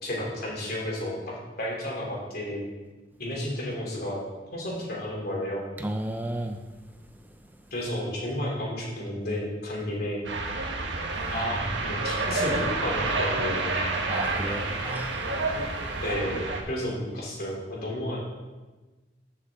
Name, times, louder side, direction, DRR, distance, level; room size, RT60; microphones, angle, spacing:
voice 1, 0.0-2.6 3.2-4.2 4.5-5.6 7.7-10.2 11.3-13.6 16.0-18.2, left 1 dB, 55° left, -3 dB, 3.2 m, -32 dB
voice 2, 5.8-6.6 14.1-15.1, right 1 dB, 10° right, 5 dB, 0.4 m, -32 dB
sound 1, 10.2-16.6, right 3 dB, 75° right, 1.3 m, -29 dB
14.0 x 6.5 x 3.7 m, 1.2 s
head